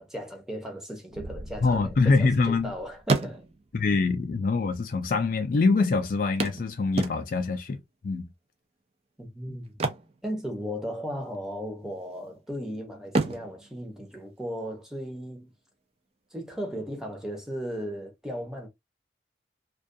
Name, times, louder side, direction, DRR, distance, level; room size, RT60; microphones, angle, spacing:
voice 1, 0.0-3.4 9.2-9.8 10.2-15.5 16.3-18.7, equal, 5° right, 0.7 m, -36 dB
sound 1, 1.1-3.7, right 1 dB, 75° right, 0.7 m, -43 dB
sound 2, 1.4-2.7 3.0-3.8 4.7-4.8 5.0-5.1 6.4-7.6 9.6-11.0 11.2-11.5 12.0-12.6 13.0-14.8 16.8-16.9 17.3-17.4, right 3 dB, 35° right, 0.4 m, -31 dB
voice 2, 1.6-2.7 3.7-8.3 9.5-9.6, left 4 dB, 50° left, 0.4 m, -24 dB
2.3 x 2.2 x 2.6 m
head